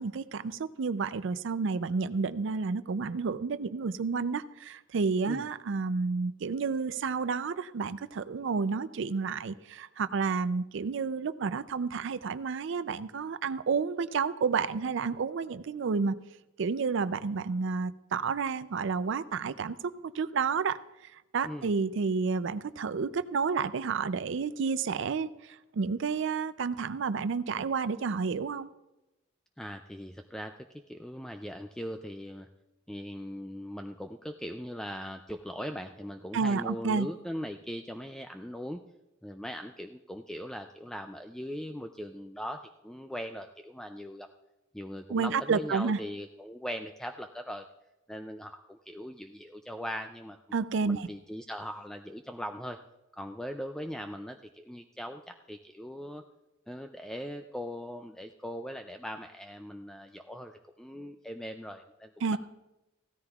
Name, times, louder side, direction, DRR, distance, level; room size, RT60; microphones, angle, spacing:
voice 1, 0.0-16.2 16.6-20.8 21.3-25.3 25.7-28.7 36.3-37.1 45.1-46.0 50.5-51.1 62.2-62.4, right 5 dB, 65° right, 15 dB, 0.4 m, -30 dB
voice 2, 29.6-32.5 32.9-38.8 39.2-44.3 44.7-47.6 48.1-50.4 50.8-52.8 53.1-55.2 55.5-56.2 56.7-62.4, equal, 5° left, 6 dB, 0.3 m, -40 dB
16.0 x 13.5 x 2.3 m, 0.98 s
head